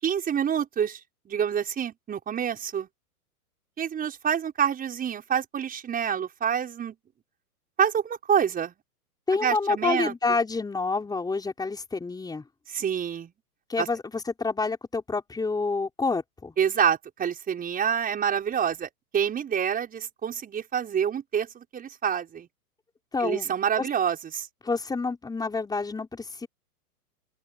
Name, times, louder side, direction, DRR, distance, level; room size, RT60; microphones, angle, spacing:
voice 1, 0.0-1.0 1.3-2.9 3.8-6.9 7.8-8.7 9.3-10.1 12.7-13.3 13.8-13.9 16.6-22.5 23.2-24.5, right 8 dB, 20° right, 6.0 m, -27 dB
voice 2, 9.3-12.4 13.7-16.5 23.1-23.5 23.8-23.9 24.6-26.5, left 4 dB, 10° left, 5.8 m, -28 dB
open air
hypercardioid pair, 130°, 45 cm